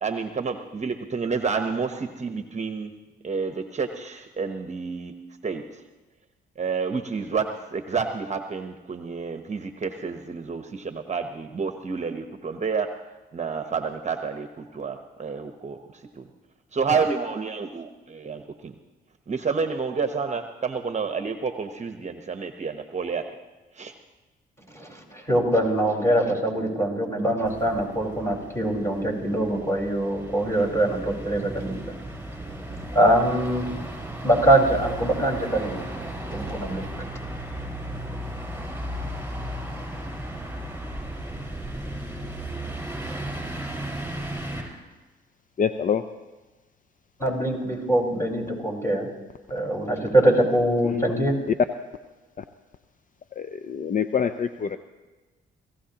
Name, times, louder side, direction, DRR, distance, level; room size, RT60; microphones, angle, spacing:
voice 1, 0.0-2.9 3.2-5.1 5.4-5.6 6.6-12.9 13.3-16.3 16.7-18.7 19.3-23.2 23.8-23.9, right 5 dB, 35° right, 7 dB, 1.0 m, -29 dB
voice 2, 24.7-31.7 32.6-33.7 34.2-35.8 36.1-36.9 47.2-49.1 49.5-51.3, right 1 dB, 15° left, -1 dB, 4.8 m, -23 dB
sound 1, 27.4-44.6, right 1 dB, 10° right, 5.2 m, -35 dB
voice 3, 45.6-46.1 50.8-51.0 53.4-54.8, left 7 dB, 45° left, 10 dB, 0.6 m, -26 dB
23.0 x 15.5 x 3.0 m, 1.2 s
supercardioid pair, 70°, 20 cm